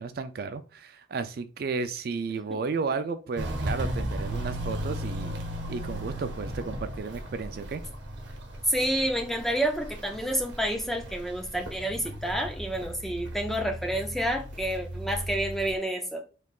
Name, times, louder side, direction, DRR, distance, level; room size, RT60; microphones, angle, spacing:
voice 1, 0.0-5.4 5.7-7.8, right 4 dB, 55° right, 0.3 m, -33 dB
Walk footsteps, 3.3-15.8, right 1 dB, 70° right, 0.9 m, -36 dB
voice 2, 8.7-16.2, right 1 dB, ahead, 0.5 m, -29 dB
3.7 x 3.2 x 2.4 m
head